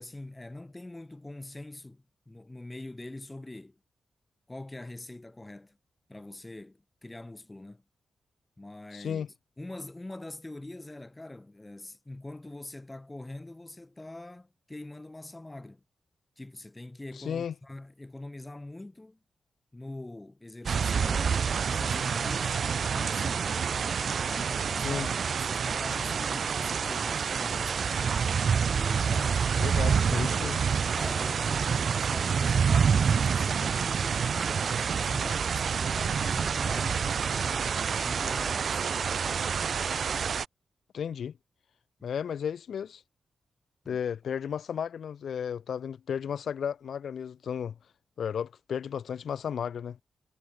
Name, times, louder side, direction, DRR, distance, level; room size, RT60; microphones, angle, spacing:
voice 1, 0.0-3.8 4.5-5.8 6.1-7.8 8.6-9.2 9.6-15.8 16.4-19.2 19.7-22.6 22.9-23.5 24.0-28.1 28.6-29.5 29.8-30.5 30.9-37.7 38.0-39.1 42.0-42.1 43.8-44.0, left 2 dB, 15° left, 2.0 m, -44 dB
voice 2, 8.9-9.3 17.2-17.5 24.8-25.1 29.6-30.6 40.9-41.3 42.0-43.0 43.9-47.7 48.2-50.0, left 8 dB, 75° left, 1.1 m, -34 dB
sound 1, 20.7-40.5, right 6 dB, 60° right, 0.5 m, -27 dB
cardioid pair, 100°, 0 cm